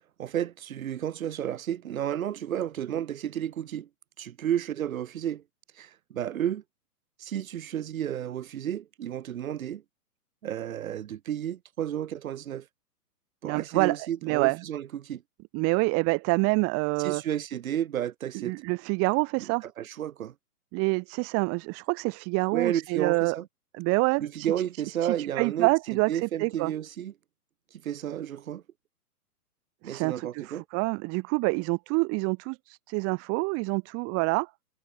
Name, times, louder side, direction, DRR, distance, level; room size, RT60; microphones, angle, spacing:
voice 1, 0.2-3.9 4.2-5.4 5.8-6.6 7.2-9.8 10.4-12.7 13.4-15.2 17.0-18.5 19.4-19.5 19.8-20.3 22.5-23.5 24.2-27.1 27.7-28.6 29.8-30.6, right 10 dB, 60° right, 3.8 m, -32 dB
voice 2, 13.4-14.0 14.2-14.6 15.5-17.2 18.4-19.6 20.7-23.4 23.7-24.5 25.0-26.7 29.8-34.5, right 30 dB, 30° right, 3.9 m, -27 dB
hypercardioid pair, 140°, 46 cm